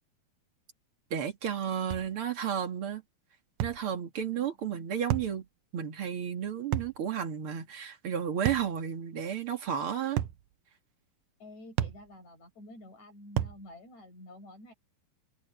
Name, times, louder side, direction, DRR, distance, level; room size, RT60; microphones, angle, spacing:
voice 1, 1.1-3.0 3.6-5.5 5.7-10.2, right 8 dB, 40° right, 2.6 m, -32 dB
sound 1, 1.9-2.1 3.6-3.8 5.1-5.4 6.7-7.0 8.5-8.7 10.2-10.4 11.8-12.0 13.4-13.6, right 12 dB, 75° right, 2.1 m, -31 dB
voice 2, 4.3-4.8 11.4-14.7, left 1 dB, 50° left, 9.3 m, -50 dB
open air
omnidirectional pair, 4.2 m